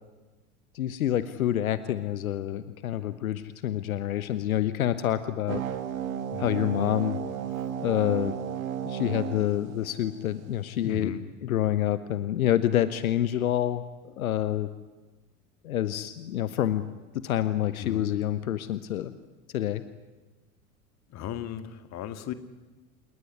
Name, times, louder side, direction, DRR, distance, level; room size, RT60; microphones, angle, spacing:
voice 1, 0.7-5.6 6.4-7.2 7.8-8.3 8.8-11.1 11.4-13.8 14.2-14.7 15.6-16.8 17.2-19.1 19.5-19.8, left 12 dB, 70° left, 14 dB, 1.2 m, -27 dB
sound 1, 5.5-10.5, right 9 dB, 65° right, 2.6 m, -34 dB
voice 2, 6.3-6.7 10.8-11.2 14.1-14.2 17.8-18.1 21.1-22.3, left 10 dB, 35° left, 11 dB, 2.1 m, -36 dB
28.0 x 20.0 x 9.7 m, 1.2 s
figure-of-eight pair, 80°, 44 cm